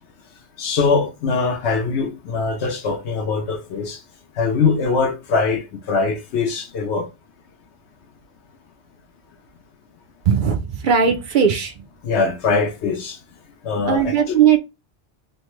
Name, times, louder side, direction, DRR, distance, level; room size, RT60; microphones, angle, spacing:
voice 1, 0.6-4.0 4.4-7.1 12.0-13.2 13.6-14.4, left 4 dB, 70° left, 0.9 m, -22 dB
voice 2, 10.3-11.8 13.8-14.6, right 7 dB, 60° right, 0.5 m, -18 dB
3.2 x 2.1 x 3.0 m
omnidirectional pair, 1.2 m